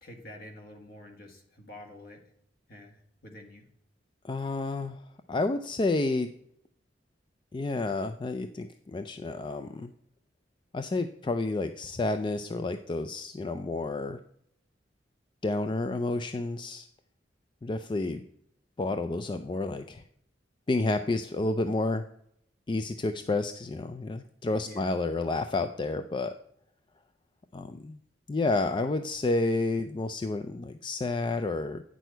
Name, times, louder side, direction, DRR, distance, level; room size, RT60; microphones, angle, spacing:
voice 1, 0.0-2.2 2.7-3.7 24.6-24.9, left 1 dB, 55° left, 3 dB, 1.7 m, -48 dB
voice 2, 4.2-5.0 5.3-6.3 7.5-9.9 10.7-14.2 15.4-16.9 17.6-18.2 18.8-20.0 20.7-22.0 22.7-26.3 27.5-28.0 28.3-31.8, left 2 dB, 25° left, 8 dB, 0.4 m, -30 dB
9.2 x 6.2 x 4.5 m, 0.72 s
head